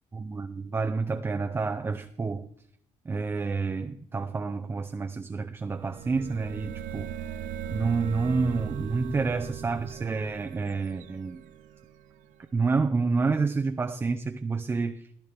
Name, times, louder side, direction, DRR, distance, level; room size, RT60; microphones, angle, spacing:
voice 1, 0.1-2.5 3.1-7.1 7.7-11.4 12.5-15.0, right 4 dB, 20° right, 0.5 m, -29 dB
sound 1, 5.6-12.3, right 9 dB, 85° right, 0.8 m, -39 dB
14.5 x 12.0 x 3.4 m
cardioid pair, 145°, 13 cm